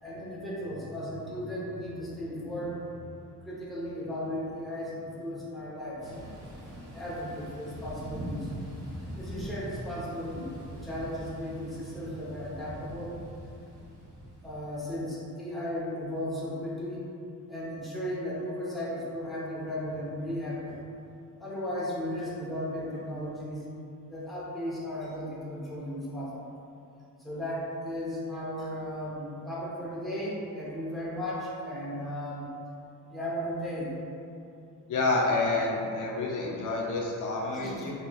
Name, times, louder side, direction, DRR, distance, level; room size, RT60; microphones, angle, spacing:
voice 1, 0.0-3.1 3.4-6.1 6.8-8.5 9.2-13.2 14.4-17.1 17.5-20.8 21.4-23.6 24.1-26.5 27.2-32.5 33.1-34.0 37.5-37.8, equal, ahead, -8 dB, 0.7 m, -35 dB
Thunder / Rain, 6.0-14.8, equal, 85° right, 1.4 m, -42 dB
voice 2, 34.9-37.9, left 2 dB, 60° left, -2 dB, 0.5 m, -28 dB
4.3 x 2.9 x 2.3 m, 2.6 s
cardioid pair, 135°, 35 cm